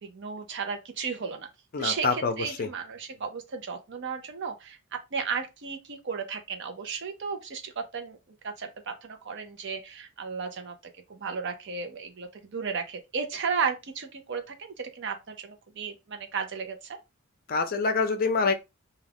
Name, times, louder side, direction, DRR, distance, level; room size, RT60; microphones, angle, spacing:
voice 1, 0.0-1.5 1.8-4.8 5.1-8.2 8.4-10.7 11.1-17.0, right 5 dB, 55° right, 0.6 m, -34 dB
voice 2, 1.7-2.7 17.5-18.5, left 4 dB, 45° left, 0.5 m, -26 dB
2.3 x 2.3 x 3.4 m
head